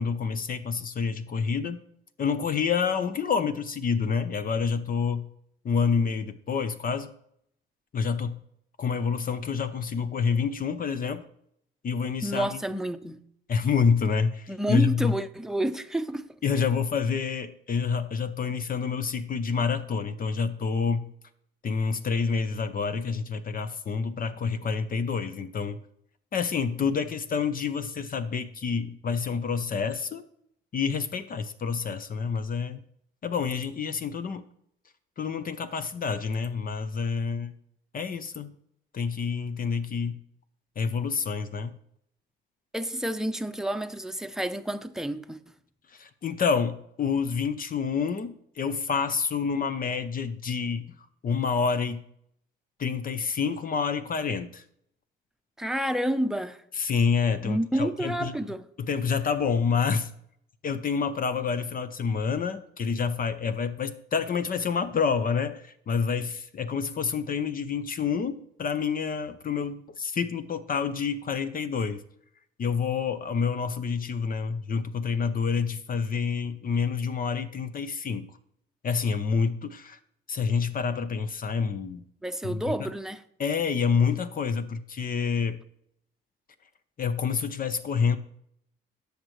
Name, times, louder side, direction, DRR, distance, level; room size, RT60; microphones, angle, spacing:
voice 1, 0.0-1.8 2.2-5.3 5.6-7.1 7.9-8.4 8.8-11.2 11.8-12.6 13.5-15.2 16.4-21.1 21.6-25.8 26.3-30.2 30.7-32.8 33.2-34.4 35.2-37.5 37.9-38.5 38.9-40.2 40.8-41.8 45.9-50.9 51.2-52.0 52.8-54.6 56.8-58.3 58.8-60.1 60.6-72.0 72.6-78.3 78.8-80.0 80.3-82.0 82.4-82.9 83.4-85.6 87.0-88.2, left 6 dB, 45° left, 0.7 m, -28 dB
voice 2, 12.2-13.2 14.5-16.3 42.7-45.4 55.6-56.6 57.4-58.7 82.2-83.2, right 1 dB, ahead, 0.7 m, -29 dB
17.0 x 6.6 x 3.2 m
cardioid pair, 90°, 20 cm